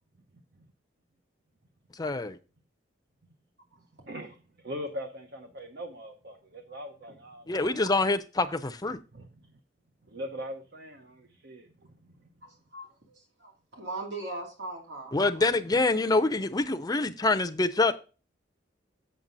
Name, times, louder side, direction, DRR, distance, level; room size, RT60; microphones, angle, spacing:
voice 1, 2.0-2.4 7.5-9.0 15.1-18.0, left 2 dB, 20° left, 0.6 m, -26 dB
voice 2, 4.1-7.8 9.1-9.6 10.0-12.1, equal, 60° right, 0.9 m, -41 dB
voice 3, 12.4-15.4, right 2 dB, 85° right, 2.7 m, -40 dB
7.5 x 7.0 x 4.0 m
head